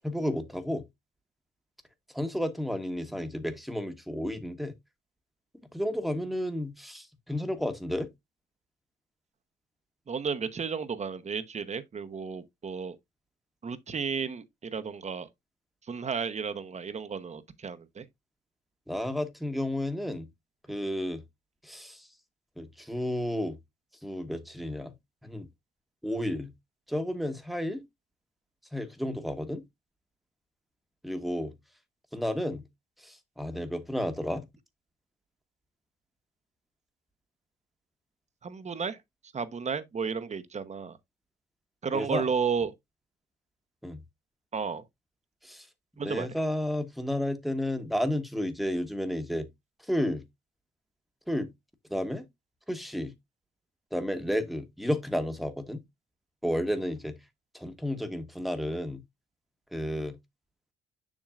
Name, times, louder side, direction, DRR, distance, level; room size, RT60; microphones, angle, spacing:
voice 1, 0.0-0.8 2.1-4.7 5.7-8.1 18.9-20.3 20.7-21.2 21.6-22.1 22.6-23.6 24.0-24.9 25.2-25.5 26.0-26.5 26.9-27.8 28.7-29.6 31.0-31.5 32.1-32.6 33.0-34.5 41.9-42.3 43.8-44.0 45.4-45.7 46.0-49.5 49.9-50.2 51.3-51.5 51.9-52.2 52.7-53.1 53.9-55.8 56.4-57.1 57.5-59.0 59.7-60.2, left 1 dB, ahead, 1.2 m, -32 dB
voice 2, 10.1-12.9 13.6-15.3 15.9-18.0 38.4-39.0 39.3-41.0 41.8-42.7 44.5-44.8 46.0-46.3, right 6 dB, 35° right, 1.0 m, -33 dB
7.3 x 6.2 x 2.5 m
cardioid pair, 90°, 20 cm